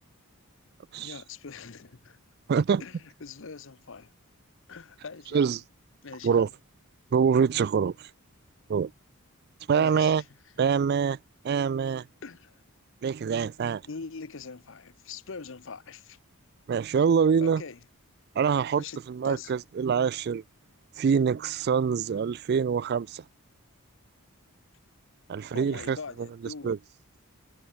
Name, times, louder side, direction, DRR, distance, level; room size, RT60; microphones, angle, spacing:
voice 1, 1.0-2.2 2.8-4.1 4.7-5.6 6.0-6.5 9.7-10.1 12.2-12.6 13.8-16.2 17.4-17.8 18.7-19.6 25.5-26.8, left 4 dB, 60° left, 0.8 m, -42 dB
voice 2, 2.5-2.8 5.3-5.6 6.2-6.5 7.1-8.1 8.7-8.9 9.7-10.2 10.6-11.2 11.4-12.1 13.0-13.8 16.7-17.6 18.4-20.4 21.0-23.2 25.3-26.0 26.6-26.8, right 6 dB, 50° right, 0.3 m, -25 dB
head